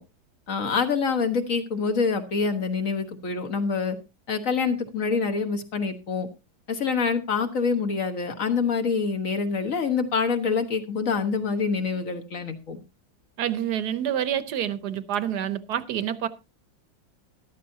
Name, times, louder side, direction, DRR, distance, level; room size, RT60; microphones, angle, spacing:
voice 1, 0.5-4.0 4.3-6.3 6.7-12.8, left 5 dB, 45° left, 1.6 m, -26 dB
voice 2, 13.4-16.3, right 10 dB, 60° right, 1.3 m, -27 dB
13.5 x 12.5 x 2.8 m
omnidirectional pair, 2.1 m